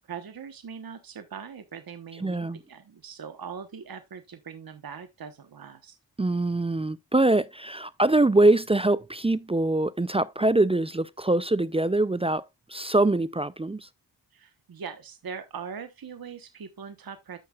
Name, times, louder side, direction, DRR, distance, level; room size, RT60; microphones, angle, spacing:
voice 1, 0.1-6.0 14.3-17.4, right 6 dB, 55° right, 1.2 m, -41 dB
voice 2, 2.2-2.6 6.2-13.9, right 2 dB, 15° right, 0.4 m, -23 dB
13.5 x 5.8 x 2.4 m
cardioid pair, 60°, 42 cm